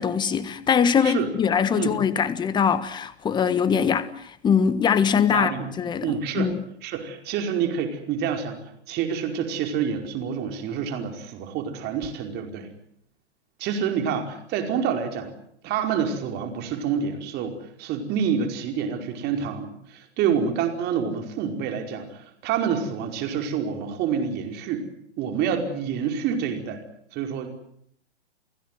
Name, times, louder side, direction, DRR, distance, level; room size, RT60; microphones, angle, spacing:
voice 1, 0.0-6.6, left 7 dB, 15° left, 1.4 m, -22 dB
voice 2, 5.3-5.6 6.0-6.5 6.8-12.7 13.6-15.3 15.6-24.9 25.2-26.8 27.1-27.5, right 7 dB, 30° right, 5.1 m, -27 dB
30.0 x 16.5 x 9.3 m
hypercardioid pair, 125°, 33 cm